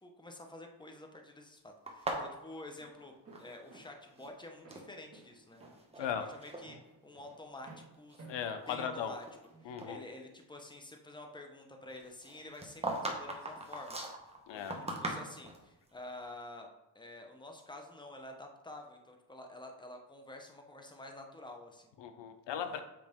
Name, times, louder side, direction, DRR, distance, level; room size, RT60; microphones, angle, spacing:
voice 1, 0.0-5.6 5.9-6.8 7.0-8.2 8.7-9.2 9.6-14.0 14.5-16.7 16.9-21.9 22.7-22.8, left 2 dB, 10° left, 3 dB, 1.0 m, -49 dB
sound 1, 1.9-4.9 5.5-6.1 6.4-6.6 7.3-7.4 7.9-9.5 9.8-9.9 12.2-15.6, right 2 dB, 15° right, 1.2 m, -40 dB
Walk footsteps, 2.8-9.7, right 3 dB, 35° right, 1.9 m, -57 dB
voice 2, 8.3-9.2 9.6-10.0 14.5-14.8 22.0-22.8, left 8 dB, 90° left, 9 dB, 0.8 m, -37 dB
7.8 x 5.1 x 3.6 m, 0.97 s
cardioid pair, 110°, 42 cm